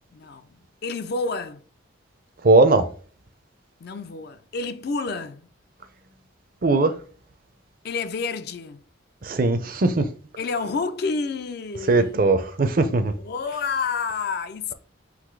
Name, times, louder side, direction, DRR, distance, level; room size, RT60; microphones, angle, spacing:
voice 1, 0.1-0.5 0.8-1.6 3.8-5.5 7.8-8.8 10.4-12.2 13.2-14.7, left 4 dB, 50° left, 0.4 m, -29 dB
voice 2, 2.4-2.9 6.6-7.0 9.2-10.1 11.9-13.1, right 2 dB, 45° right, 0.5 m, -19 dB
3.9 x 2.6 x 4.5 m
head